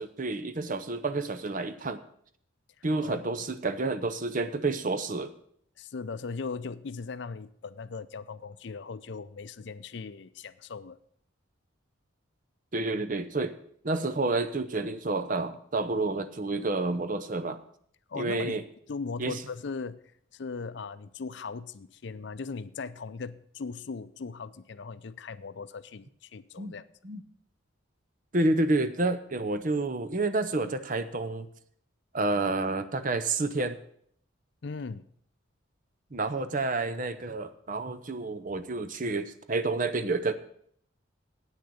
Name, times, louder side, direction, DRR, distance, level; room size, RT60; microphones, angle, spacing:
voice 1, 0.0-2.0 2.8-5.3 12.7-13.6 13.8-17.6 18.2-18.6 19.2-19.4 26.6-26.7 27.0-27.2 28.3-31.5 32.1-33.8 36.1-40.3, right 2 dB, 40° right, 11 dB, 0.7 m, -29 dB
voice 2, 2.8-3.5 5.8-11.0 18.1-20.0 20.3-26.9 34.6-35.0, left 4 dB, 60° left, 14 dB, 0.5 m, -39 dB
9.0 x 6.6 x 8.5 m, 0.65 s
head